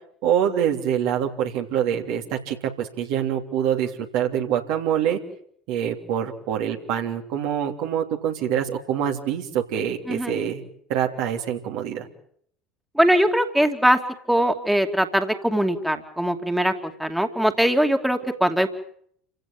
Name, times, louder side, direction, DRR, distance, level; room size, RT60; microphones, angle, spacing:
voice 1, 0.2-5.2 5.7-10.6 10.9-12.1, right 9 dB, 60° right, 2 dB, 3.2 m, -25 dB
voice 2, 12.9-14.0 14.3-18.7, equal, 5° right, 5 dB, 2.7 m, -21 dB
28.5 x 16.5 x 8.8 m, 0.66 s
figure-of-eight pair, 70°, 0 cm